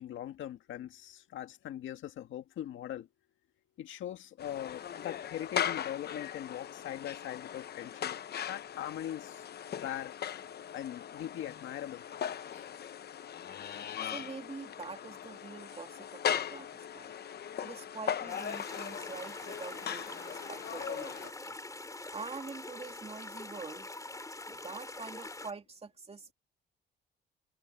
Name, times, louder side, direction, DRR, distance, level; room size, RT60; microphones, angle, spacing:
voice 1, 0.0-3.1 3.8-8.2 8.5-9.4 9.8-10.1 10.7-12.0 12.5-12.6, left 11 dB, 75° left, 1.9 m, -41 dB
sound 1, 4.4-21.3, left 9 dB, 55° left, 0.9 m, -39 dB
voice 2, 14.0-17.1 17.6-21.6 22.1-23.9 24.5-26.3, right 4 dB, 30° right, 2.8 m, -45 dB
sound 2, 18.3-25.5, left 2 dB, 15° left, 4.5 m, -44 dB
cardioid pair, 90°, 20 cm